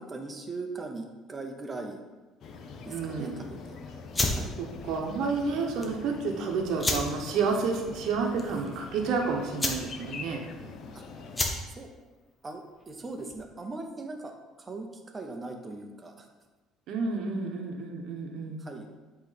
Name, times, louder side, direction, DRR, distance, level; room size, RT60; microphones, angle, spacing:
voice 1, 0.0-2.0 2.8-3.8 4.3-4.5 11.7-11.9 12.4-14.3 14.6-14.9 15.1-16.3 18.6-18.9, right 3 dB, 20° right, 3 dB, 0.8 m, -39 dB
sound 1, 2.4-11.5, left 4 dB, 50° left, 0.7 m, -44 dB
voice 2, 2.9-3.5 4.6-10.4 16.9-18.7, right 4 dB, 65° right, 2 dB, 1.0 m, -30 dB
sound 2, 4.1-13.6, left 1 dB, 10° left, 0.9 m, -34 dB
8.1 x 3.2 x 4.1 m, 1.2 s
cardioid pair, 130°, 0 cm